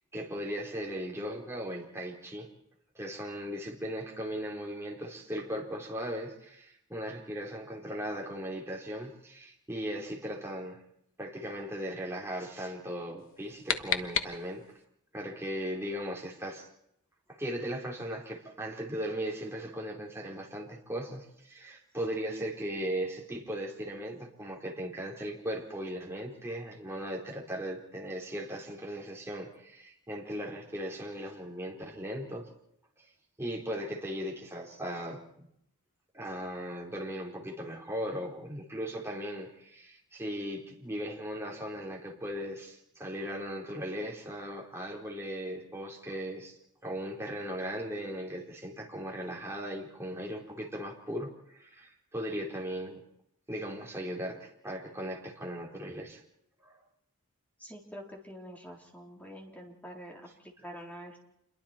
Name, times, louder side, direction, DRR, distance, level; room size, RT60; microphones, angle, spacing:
voice 1, 0.1-2.5 2.9-10.8 11.2-14.6 15.1-16.7 17.3-32.5 33.4-35.5 36.1-46.5 46.8-53.0 53.5-56.2 56.6-56.7, equal, 10° right, -2 dB, 4.3 m, -38 dB
sound 1, 13.2-14.9, left 8 dB, 65° left, 1.3 m, -34 dB
voice 2, 57.6-61.2, equal, 5° left, -1 dB, 4.0 m, -46 dB
28.0 x 22.5 x 4.5 m, 0.76 s
head